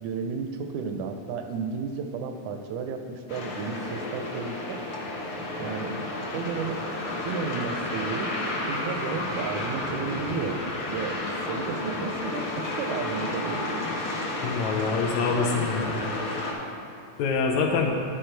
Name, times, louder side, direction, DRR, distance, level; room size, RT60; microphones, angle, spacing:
voice 1, 0.0-4.8 5.6-5.9 6.3-6.8 7.3-8.4 8.6-10.6 10.9-14.0, right 5 dB, 80° right, 6 dB, 1.9 m, -33 dB
sound 1, 3.3-16.5, left 2 dB, 60° left, 1.3 m, -32 dB
voice 2, 14.4-16.0 17.2-18.0, left 4 dB, 75° left, 2 dB, 1.9 m, -25 dB
11.0 x 5.0 x 4.4 m, 2.5 s
omnidirectional pair, 3.5 m